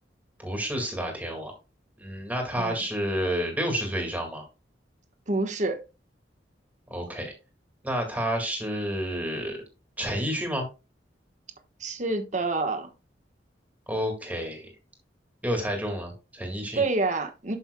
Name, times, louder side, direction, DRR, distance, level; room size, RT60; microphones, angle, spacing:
voice 1, 0.4-1.5 2.0-4.5 6.9-7.3 7.8-9.6 10.0-10.7 13.9-14.7 15.4-16.8, equal, 10° right, 2.0 m, -30 dB
voice 2, 5.3-5.8 11.8-12.9 16.8-17.6, right 3 dB, 40° right, 1.2 m, -27 dB
12.0 x 5.5 x 2.2 m
head